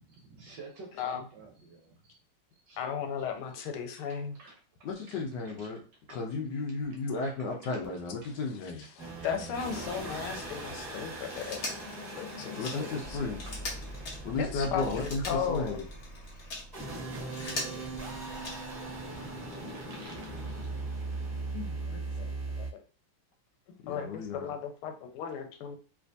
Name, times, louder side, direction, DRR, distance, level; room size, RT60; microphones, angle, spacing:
voice 1, 0.0-2.2 2.5-3.2 4.3-4.6 5.1-5.2 5.4-5.7 6.1-6.2 7.1-7.2 8.2-8.3 8.8-8.9 9.2-9.3 10.6-11.1 12.0-12.2 13.4-13.5 17.0-18.0 19.6-20.8, right 3 dB, 70° right, 2 dB, 1.1 m, -52 dB
voice 2, 2.8-4.4 9.0-11.6 12.2-13.3 14.4-15.9 21.5-22.7 23.9-25.8, left 7 dB, 85° left, 6 dB, 1.5 m, -36 dB
voice 3, 4.8-5.8 6.1-8.8 12.5-13.4 14.2-15.8 23.8-24.5, left 3 dB, 70° left, 1 dB, 1.1 m, -34 dB
sound 1, 9.0-22.7, right 2 dB, 10° right, 1.2 m, -39 dB
Telephone, 11.2-16.7 17.2-18.9 20.2-20.3, left 2 dB, 50° left, 1.2 m, -42 dB
3.3 x 3.1 x 2.6 m, 0.38 s
omnidirectional pair, 2.4 m